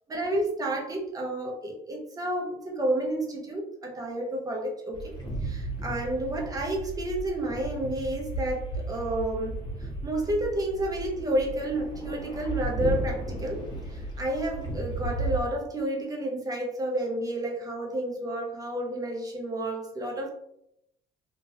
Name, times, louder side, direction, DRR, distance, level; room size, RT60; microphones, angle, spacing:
voice 1, 0.1-5.1 5.4-13.6 13.9-20.3, right 1 dB, 20° right, -1 dB, 0.9 m, -30 dB
sound 1, 4.9-15.5, right 2 dB, 25° left, 1.0 m, -34 dB
3.1 x 2.6 x 2.7 m, 0.76 s
cardioid pair, 110°, 17 cm